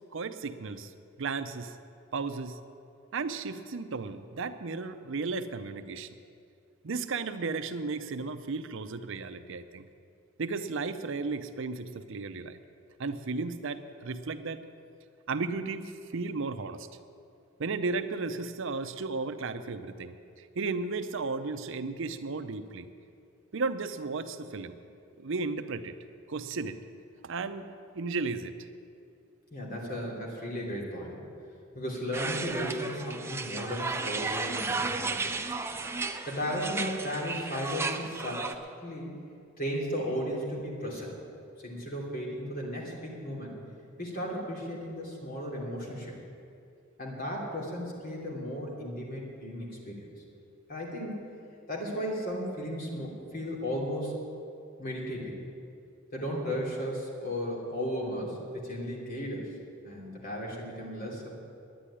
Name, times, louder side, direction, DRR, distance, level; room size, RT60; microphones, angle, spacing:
voice 1, 0.1-0.9 1.2-1.8 2.1-2.6 3.1-6.1 6.8-9.9 10.4-12.6 13.0-14.6 15.3-16.9 17.6-22.9 23.5-24.8 25.2-26.0 26.3-26.8 27.2-28.7, right 4 dB, 65° right, 10 dB, 0.6 m, -34 dB
voice 2, 29.5-31.3 31.7-35.3 36.2-38.5 38.8-39.1 39.6-41.1 41.6-43.6 44.0-46.1 47.0-50.1 50.7-51.3 51.7-54.1 54.8-55.4 56.1-59.5 59.8-61.4, equal, 45° left, -2 dB, 3.0 m, -35 dB
sound 1, 32.1-38.5, right 3 dB, 10° right, 0.6 m, -34 dB
10.5 x 10.0 x 9.9 m, 2.5 s
head